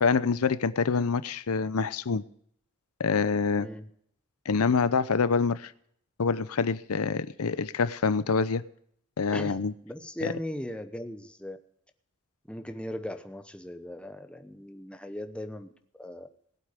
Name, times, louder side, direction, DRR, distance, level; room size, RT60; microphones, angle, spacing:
voice 1, 0.0-2.2 3.0-3.7 4.5-5.7 6.2-8.6 9.2-9.7 10.2-10.3, left 5 dB, 90° left, 15 dB, 0.6 m, -26 dB
voice 2, 3.6-3.9 9.3-11.6 12.5-15.7 15.9-16.3, left 1 dB, 5° left, 8 dB, 0.9 m, -38 dB
19.0 x 8.3 x 5.1 m, 0.66 s
head